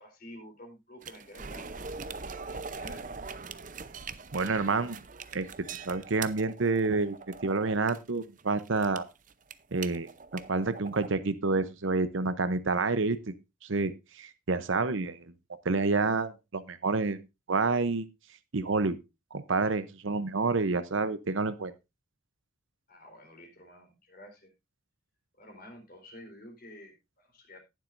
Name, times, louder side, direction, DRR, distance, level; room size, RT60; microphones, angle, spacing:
voice 1, 0.0-1.9 2.2-3.1 22.9-24.5 25.3-27.6, left 1 dB, 45° left, 2 dB, 4.1 m, -50 dB
sound 1, 1.0-11.1, right 5 dB, 40° right, 0.7 m, -42 dB
voice 2, 4.3-5.0 5.3-7.2 7.4-9.1 9.7-13.3 13.6-15.2 15.6-17.2 17.5-18.1 18.5-19.0 19.3-21.7, right 3 dB, 70° right, 12 dB, 0.8 m, -29 dB
18.5 x 7.5 x 2.6 m, 0.25 s
head